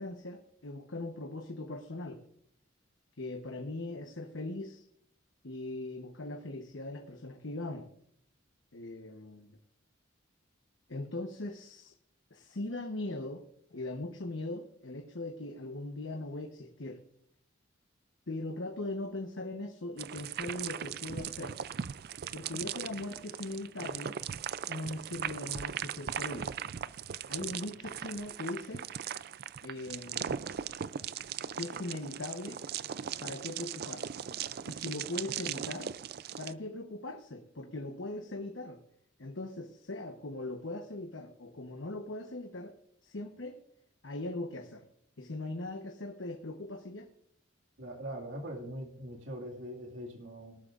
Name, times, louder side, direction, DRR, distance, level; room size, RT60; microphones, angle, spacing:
voice 1, 0.0-2.2 3.2-4.8 5.4-7.9 8.7-9.6 10.9-11.9 12.3-13.4 13.7-17.0 18.3-21.6 22.3-24.2 24.7-26.5 27.3-28.8 29.6-30.4 31.4-32.6 33.2-34.2 34.7-35.9 36.4-38.8 39.2-42.7 43.0-43.6 44.0-44.8 45.2-47.1, left 2 dB, 75° left, 5 dB, 1.0 m, -40 dB
sound 1, 20.0-36.5, right 8 dB, 50° right, 0.4 m, -39 dB
voice 2, 47.8-50.6, equal, 75° right, 0 dB, 2.1 m, -42 dB
18.5 x 12.5 x 2.5 m, 0.70 s
head